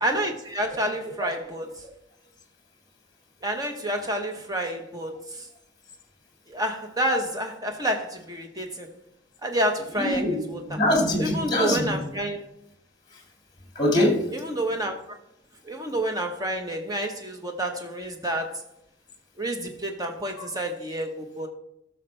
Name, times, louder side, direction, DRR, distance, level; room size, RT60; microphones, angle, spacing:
voice 1, 0.0-1.7 3.4-5.1 6.5-8.9 9.4-10.2 10.5-10.6 11.2-12.4 14.5-14.9 15.6-18.5 19.4-21.5, right 1 dB, 20° right, 4 dB, 1.0 m, -28 dB
voice 2, 9.9-12.0 13.1-13.2 13.7-14.3 20.4-20.5, left 1 dB, 20° left, 1 dB, 2.2 m, -24 dB
15.5 x 6.6 x 3.3 m, 0.81 s
head